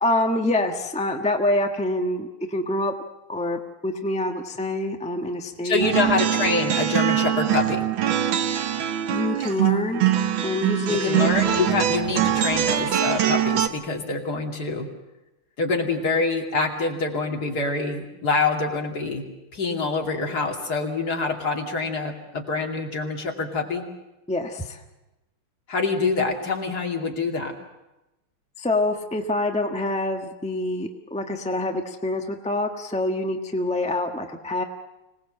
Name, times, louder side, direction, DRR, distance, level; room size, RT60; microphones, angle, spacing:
voice 1, 0.0-2.9 3.3-5.9 9.1-10.0 10.4-11.3 24.3-24.8 28.6-34.6, left 1 dB, 5° left, 3 dB, 0.8 m, -26 dB
voice 2, 5.6-7.9 10.9-14.9 15.6-19.2 19.5-23.8 25.7-27.5, left 3 dB, 45° left, 1 dB, 3.0 m, -25 dB
sound 1, 5.8-13.7, right 11 dB, 65° right, 1.7 m, -23 dB
25.0 x 18.5 x 7.7 m, 1.0 s
omnidirectional pair, 2.4 m